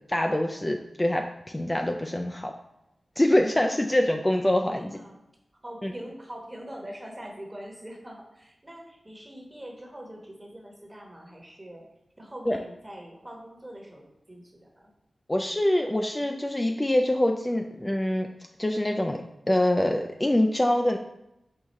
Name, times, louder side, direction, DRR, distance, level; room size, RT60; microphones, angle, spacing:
voice 1, 0.1-2.5 3.2-5.0 5.8-5.9 12.5-12.6 15.3-18.3 18.6-19.2 19.5-21.0, left 1 dB, 20° left, 4 dB, 0.3 m, -25 dB
voice 2, 4.7-5.2 5.6-11.9 12.2-14.9, equal, 25° right, 0 dB, 1.1 m, -43 dB
4.7 x 2.4 x 4.1 m, 0.87 s
cardioid pair, 55°, 0 cm